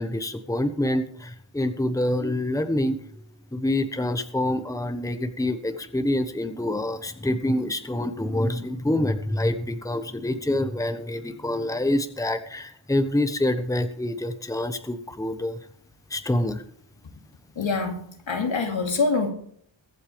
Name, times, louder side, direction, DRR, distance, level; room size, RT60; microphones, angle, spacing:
voice 1, 0.0-3.0 3.5-15.6 16.1-16.6, left 1 dB, 5° left, 8 dB, 1.1 m, -26 dB
voice 2, 17.6-18.0 18.3-19.3, left 4 dB, 75° left, 3 dB, 2.5 m, -24 dB
23.0 x 8.3 x 3.4 m, 0.64 s
wide cardioid pair, 120°, 46 cm